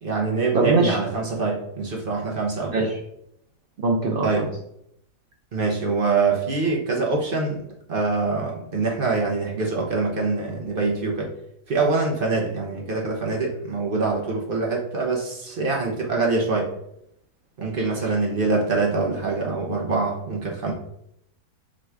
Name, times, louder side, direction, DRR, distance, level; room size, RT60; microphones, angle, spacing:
voice 1, 0.0-2.9 4.2-4.5 5.5-7.6 7.9-11.3 11.7-16.7 17.6-20.7, right 3 dB, 45° right, -1 dB, 0.7 m, -24 dB
voice 2, 0.5-1.0 2.7-2.9 3.8-4.5, right 3 dB, 90° right, 0 dB, 0.4 m, -21 dB
4.8 x 2.4 x 4.4 m, 0.75 s
omnidirectional pair, 1.7 m